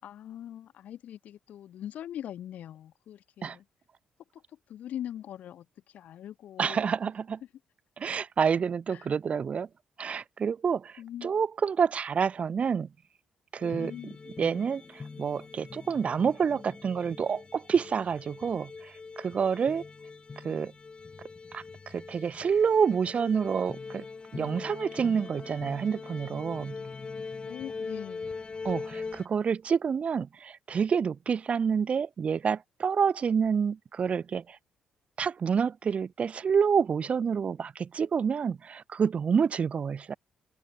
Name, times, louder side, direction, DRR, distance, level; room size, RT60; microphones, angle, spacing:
voice 1, 0.0-3.6 4.3-4.4 4.7-6.9 8.9-9.1 11.0-11.4 13.6-14.2 27.5-28.4, left 11 dB, 70° left, 3.9 m, -42 dB
voice 2, 6.6-7.4 8.0-9.7 10.0-12.9 13.5-13.9 14.4-19.8 20.4-20.7 21.5-24.0 24.3-26.8 28.6-34.6 35.2-40.2, right 6 dB, 50° right, 3.4 m, -28 dB
sound 1, 13.6-29.3, left 4 dB, 35° left, 4.1 m, -42 dB
supercardioid pair, 50°, 3 cm